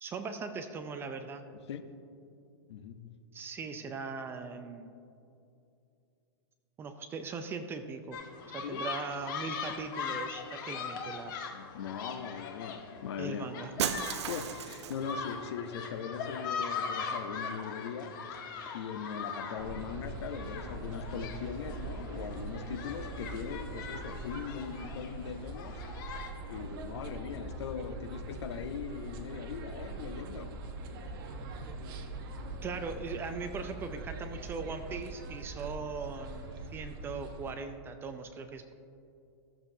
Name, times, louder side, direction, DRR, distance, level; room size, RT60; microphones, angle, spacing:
voice 1, 0.0-1.4 3.3-5.0 6.8-8.2 8.5-11.4 13.2-13.7 32.6-38.7, right 4 dB, 15° right, 0.4 m, -40 dB
voice 2, 2.7-3.2 8.6-8.9 11.5-13.5 14.2-18.3 18.7-25.8 26.5-30.7, left 7 dB, 80° left, 0.7 m, -40 dB
sound 1, 8.1-26.3, left 5 dB, 50° left, 1.1 m, -41 dB
Shatter, 13.8-15.1, right 8 dB, 85° right, 0.6 m, -34 dB
sound 2, 19.6-37.5, right 2 dB, 50° right, 1.0 m, -42 dB
15.0 x 7.1 x 2.7 m
hypercardioid pair, 145°, 14 cm